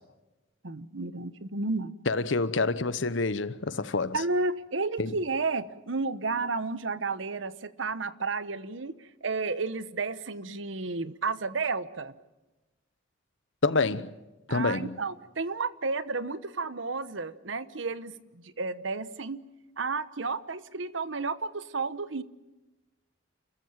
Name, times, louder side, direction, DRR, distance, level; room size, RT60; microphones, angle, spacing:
voice 1, 0.6-1.9 4.1-8.9 9.2-12.1 14.5-19.4 19.8-22.2, right 3 dB, 75° right, 1.1 m, -32 dB
voice 2, 2.1-4.2 5.0-5.1 13.6-14.1 14.5-15.0, left 3 dB, 70° left, 1.0 m, -27 dB
29.5 x 14.5 x 9.0 m
head